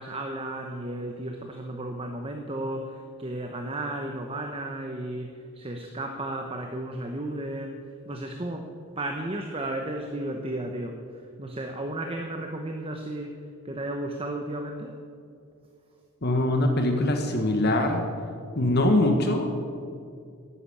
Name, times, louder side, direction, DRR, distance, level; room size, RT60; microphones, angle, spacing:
voice 1, 0.0-7.8 8.1-8.7 9.0-14.9, right 1 dB, 25° right, 3 dB, 0.9 m, -34 dB
voice 2, 16.2-18.1 18.6-19.6, left 1 dB, 50° left, 4 dB, 1.3 m, -23 dB
11.5 x 10.0 x 8.5 m, 2.3 s
head